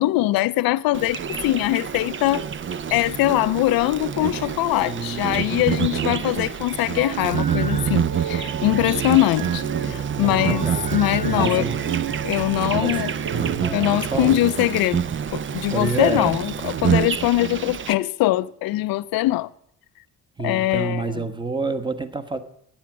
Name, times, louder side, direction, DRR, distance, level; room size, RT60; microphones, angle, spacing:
voice 1, 0.0-2.4 2.9-11.7 12.2-13.1 13.7-15.0 15.3-19.5 20.4-21.2, left 16 dB, 70° left, 0.6 m, -22 dB
Insect, 0.9-17.9, right 8 dB, 35° right, 0.6 m, -27 dB
voice 2, 4.8-5.7 10.2-11.8 12.7-13.0 13.3-14.3 15.7-16.3 20.4-22.4, right 4 dB, 15° right, 1.3 m, -28 dB
sound 1, 7.0-14.0, right 7 dB, 65° right, 1.7 m, -33 dB
15.0 x 9.7 x 6.1 m
cardioid pair, 85°, 37 cm